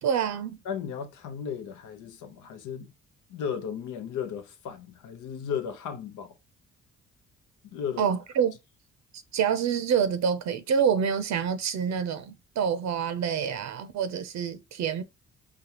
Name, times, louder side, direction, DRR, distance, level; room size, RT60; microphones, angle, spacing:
voice 1, 0.0-0.6 8.0-8.5 9.3-15.0, right 7 dB, 65° right, 0.6 m, -27 dB
voice 2, 0.6-2.9 3.3-6.3 7.6-8.1, left 7 dB, 85° left, 0.8 m, -35 dB
5.0 x 2.3 x 2.9 m
cardioid pair, 90°, 30 cm